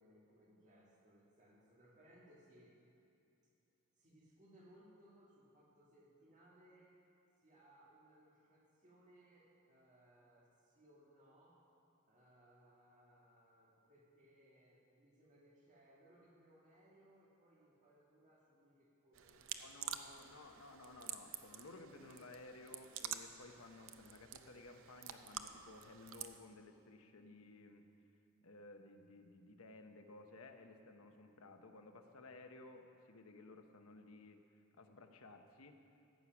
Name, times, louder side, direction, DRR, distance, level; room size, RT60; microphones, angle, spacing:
voice 1, 0.0-2.8 4.0-7.0 7.4-11.7 12.1-20.4, right 1 dB, 35° right, -3 dB, 1.9 m, -66 dB
sound 1, 19.1-26.4, right 9 dB, 65° right, 0.6 m, -49 dB
voice 2, 19.6-27.9 28.4-34.4 34.8-35.8, left 2 dB, 75° left, 5 dB, 0.9 m, -56 dB
14.5 x 8.5 x 6.0 m, 2.6 s
head